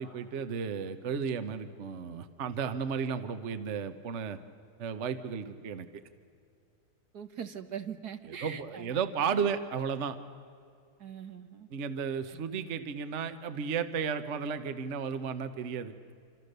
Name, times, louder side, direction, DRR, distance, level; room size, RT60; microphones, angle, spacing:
voice 1, 0.0-4.4 4.8-5.9 8.3-10.2 11.7-15.9, right 6 dB, 50° right, 10 dB, 1.2 m, -33 dB
voice 2, 7.1-9.0 9.3-9.5 11.0-11.7 12.3-12.4, right 8 dB, 70° right, 8 dB, 1.8 m, -42 dB
27.0 x 26.5 x 6.7 m, 2.4 s
omnidirectional pair, 1.8 m